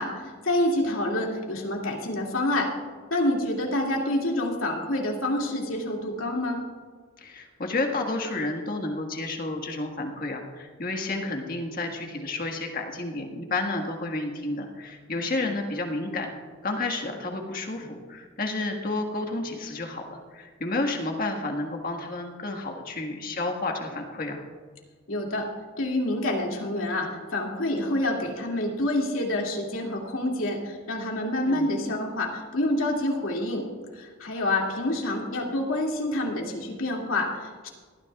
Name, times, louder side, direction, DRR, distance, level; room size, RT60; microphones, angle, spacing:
voice 1, 0.0-2.7 3.1-6.6 25.1-25.5 25.8-33.7 33.9-37.7, left 1 dB, 75° left, -1 dB, 2.4 m, -27 dB
voice 2, 7.2-16.3 16.6-24.4 31.5-31.7, left 2 dB, 45° left, 2 dB, 1.6 m, -31 dB
19.5 x 13.5 x 2.4 m, 1.5 s
head